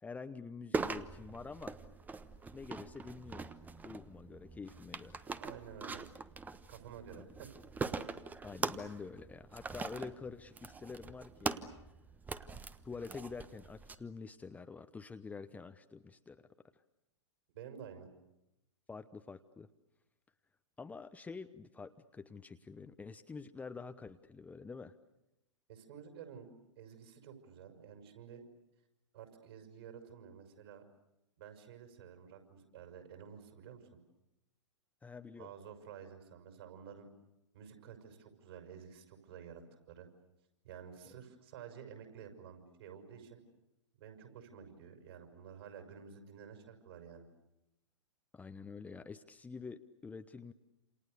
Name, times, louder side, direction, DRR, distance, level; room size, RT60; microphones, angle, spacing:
voice 1, 0.0-1.8 2.5-3.5 3.8-5.3 7.2-7.3 8.4-11.7 12.8-16.5 18.9-19.7 20.8-24.9 35.0-35.5 48.3-50.5, left 4 dB, 10° left, 9 dB, 0.9 m, -47 dB
sound 1, 0.7-13.9, right 4 dB, 10° right, 1.1 m, -42 dB
voice 2, 5.2-6.1 6.7-7.5 17.5-18.1 25.7-28.4 29.1-30.9 31.4-33.9 35.4-37.1 37.5-40.1 40.6-43.4 44.0-47.3, right 8 dB, 55° right, 5 dB, 6.2 m, -51 dB
28.5 x 28.0 x 6.7 m, 0.93 s
figure-of-eight pair, 110°, 15 cm